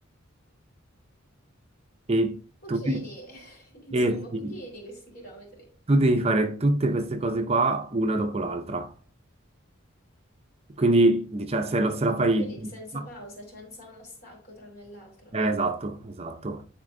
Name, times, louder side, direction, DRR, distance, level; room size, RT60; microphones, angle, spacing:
voice 1, 2.1-2.4 2.7-3.0 3.9-4.5 5.9-8.9 10.8-12.5 12.9-13.0 15.3-16.6, right 2 dB, 30° right, 0.6 m, -24 dB
voice 2, 2.6-5.7 12.4-15.4, right 1 dB, 50° left, 3.7 m, -44 dB
10.5 x 4.4 x 2.6 m
head